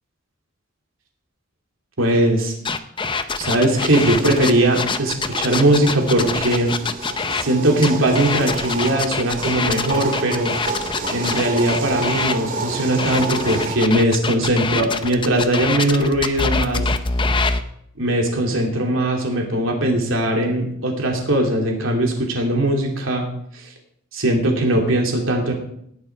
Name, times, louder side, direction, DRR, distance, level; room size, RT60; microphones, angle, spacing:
voice 1, 2.0-2.5 3.4-6.7 7.4-10.5 11.1-16.8 18.0-23.3 24.1-25.5, right 1 dB, 75° right, 1 dB, 2.8 m, -20 dB
sound 1, 2.7-7.4 7.8-12.4 13.0-17.6, left 4 dB, 25° left, 0.6 m, -24 dB
sound 2, 3.6-13.8, right 3 dB, 40° right, 2.1 m, -30 dB
18.5 x 7.0 x 4.7 m, 0.72 s
head